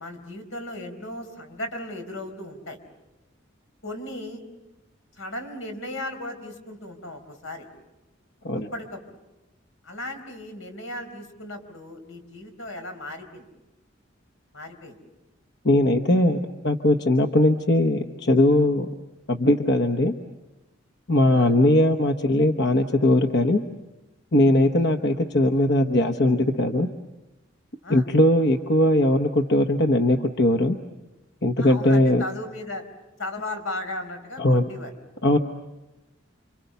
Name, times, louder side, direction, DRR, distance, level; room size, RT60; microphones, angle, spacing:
voice 1, 0.0-2.8 3.8-4.4 5.2-7.7 8.7-9.2 9.8-13.5 14.5-15.0 21.3-21.5 27.8-28.1 31.6-32.8 33.2-34.9, left 1 dB, 85° left, 7 dB, 4.5 m, -36 dB
voice 2, 15.6-18.9 19.3-20.1 21.1-23.6 24.3-26.9 27.9-30.8 31.4-32.2 34.4-34.7 35.2-35.4, left 1 dB, 55° left, 6 dB, 1.1 m, -20 dB
29.5 x 26.0 x 6.9 m, 1.0 s
head